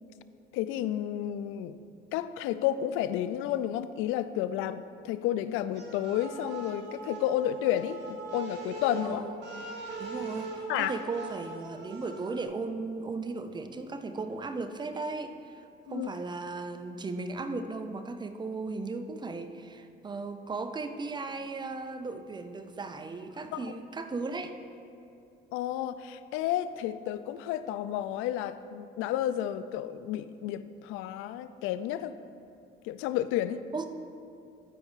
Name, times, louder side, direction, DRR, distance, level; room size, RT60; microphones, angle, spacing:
voice 1, 0.5-1.7 2.1-9.2 10.7-10.9 15.9-16.1 23.5-23.6 25.5-32.2 32.8-33.6, left 11 dB, 80° left, 13 dB, 0.5 m, -31 dB
sound 1, 5.7-12.4, right 3 dB, 60° right, 2.1 m, -41 dB
voice 2, 10.0-15.3 15.9-24.6 33.7-33.9, right 3 dB, 20° right, 9 dB, 0.6 m, -36 dB
13.5 x 4.6 x 5.6 m, 2.6 s
cardioid pair, 105°, 20 cm